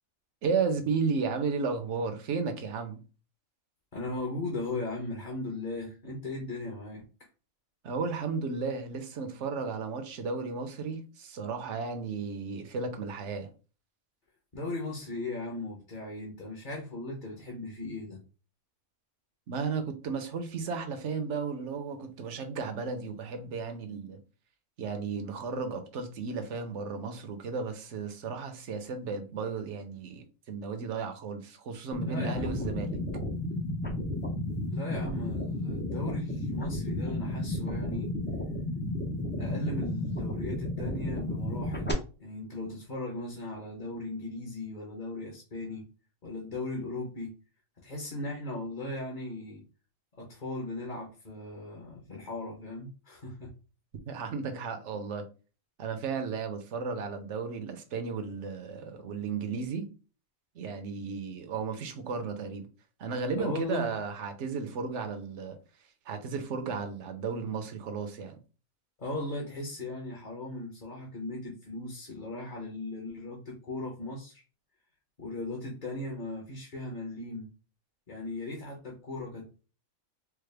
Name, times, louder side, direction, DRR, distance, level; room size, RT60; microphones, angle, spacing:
voice 1, 0.4-3.0 7.8-13.5 19.5-24.2 24.8-33.0 54.1-55.3 55.8-59.9 60.5-62.7 63.0-65.6 66.1-68.4, right 5 dB, 65° right, 1.0 m, -34 dB
voice 2, 3.9-7.0 14.5-18.2 32.0-32.8 34.7-38.1 39.4-45.9 46.2-47.3 47.8-49.6 50.1-53.5 63.4-63.9 69.0-74.4 75.2-77.5 78.1-79.6, left 2 dB, 40° left, 0.9 m, -38 dB
sound 1, 31.9-41.9, left 1 dB, 15° left, 0.3 m, -33 dB
4.7 x 2.1 x 3.3 m
omnidirectional pair, 1.4 m